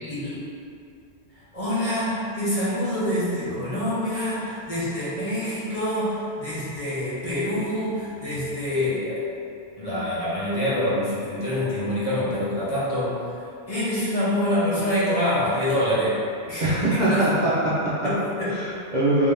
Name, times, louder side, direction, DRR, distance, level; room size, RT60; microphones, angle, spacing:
voice 1, 0.0-0.5 1.5-9.2 9.8-13.2 13.7-16.2 16.5-17.3 18.0-18.7, left 1 dB, 35° left, -10 dB, 0.8 m, -26 dB
voice 2, 16.6-17.9 18.5-19.3, right 1 dB, 50° right, -9 dB, 0.6 m, -22 dB
3.3 x 2.7 x 3.4 m, 2.4 s
omnidirectional pair, 1.2 m